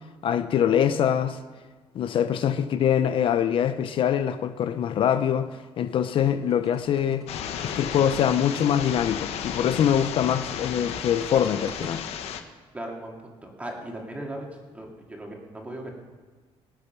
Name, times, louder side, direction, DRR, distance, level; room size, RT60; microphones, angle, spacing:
voice 1, 0.2-1.4 1.9-7.3 7.6-12.0, left 9 dB, 60° left, 10 dB, 0.6 m, -24 dB
sound 1, 6.0-12.0, right 2 dB, 35° right, 2.1 m, -46 dB
sound 2, 7.3-12.4, left 8 dB, 85° left, 1.0 m, -34 dB
voice 2, 12.7-14.5 14.7-15.9, right 1 dB, 15° right, 0 dB, 2.3 m, -37 dB
19.0 x 6.8 x 6.0 m, 1.4 s
cardioid pair, 125°, 10 cm